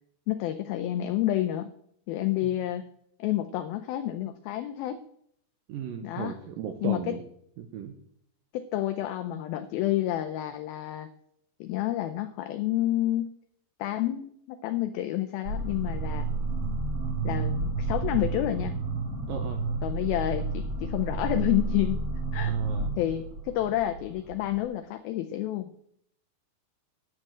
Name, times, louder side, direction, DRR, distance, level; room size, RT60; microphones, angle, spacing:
voice 1, 0.3-1.7 2.1-2.9 3.2-5.0 6.0-6.4 6.8-7.1 8.5-11.1 11.6-13.3 13.8-16.3 17.2-18.7 19.8-22.0 22.3-22.6 23.0-25.7, left 13 dB, 85° left, 9 dB, 2.1 m, -29 dB
voice 2, 5.7-7.2 7.6-7.9 19.3-19.6 22.5-22.9, right 8 dB, 75° right, 6 dB, 2.1 m, -36 dB
sound 1, 15.4-24.6, right 3 dB, 45° right, 1.8 m, -31 dB
10.5 x 7.7 x 7.4 m, 0.69 s
omnidirectional pair, 5.0 m